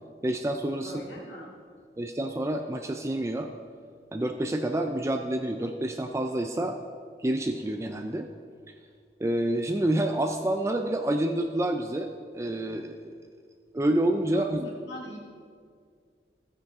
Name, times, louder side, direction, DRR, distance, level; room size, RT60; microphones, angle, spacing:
voice 1, 0.2-0.9 2.0-3.5 4.1-6.8 7.2-8.3 9.2-12.1 12.3-13.1 13.7-14.7, right 1 dB, 15° right, 5 dB, 0.4 m, -28 dB
voice 2, 0.8-1.5 14.3-15.2, left 1 dB, 80° left, -2 dB, 2.2 m, -42 dB
14.5 x 9.7 x 3.6 m, 2.1 s
head